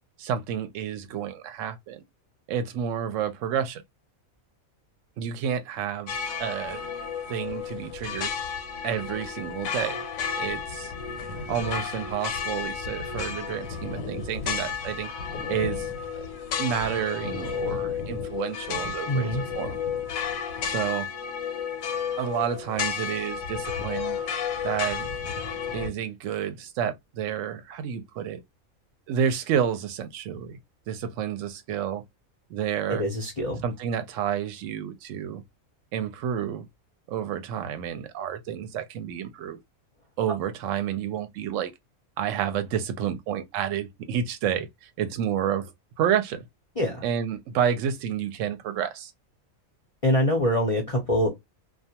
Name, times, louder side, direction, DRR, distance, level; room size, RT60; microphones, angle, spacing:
voice 1, 0.2-2.0 2.5-3.8 5.2-6.1 6.4-6.9 7.3-8.3 8.8-10.0 10.4-10.9 11.5-15.1 15.5-15.9 16.6-19.8 20.6-21.1 22.2-24.2 24.6-25.1 25.7-28.4 29.1-30.6 30.9-32.0 32.5-33.0 33.6-35.4 35.9-36.7 37.1-39.6 40.2-41.7 42.2-46.4 47.0-49.1, right 9 dB, 70° right, 0.9 m, -30 dB
sound 1, 6.1-25.9, left 6 dB, 80° left, 1.0 m, -32 dB
voice 2, 19.1-19.4 32.9-33.6 46.8-47.0 50.0-51.3, left 1 dB, 40° left, 0.5 m, -24 dB
2.3 x 2.3 x 2.7 m
omnidirectional pair, 1.4 m